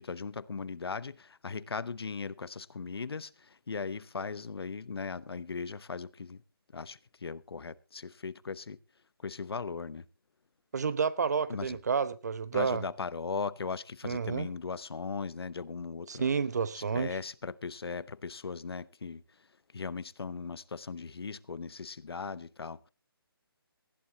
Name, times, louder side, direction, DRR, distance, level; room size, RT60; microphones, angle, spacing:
voice 1, 0.0-6.4 6.7-8.8 9.2-10.0 11.5-11.8 12.5-16.3 16.7-19.2 19.7-22.9, left 5 dB, 80° left, 0.9 m, -38 dB
voice 2, 10.7-12.8 14.0-14.5 16.1-17.2, right 6 dB, 45° right, 1.0 m, -30 dB
19.0 x 14.5 x 2.9 m
hypercardioid pair, 170°, 13 cm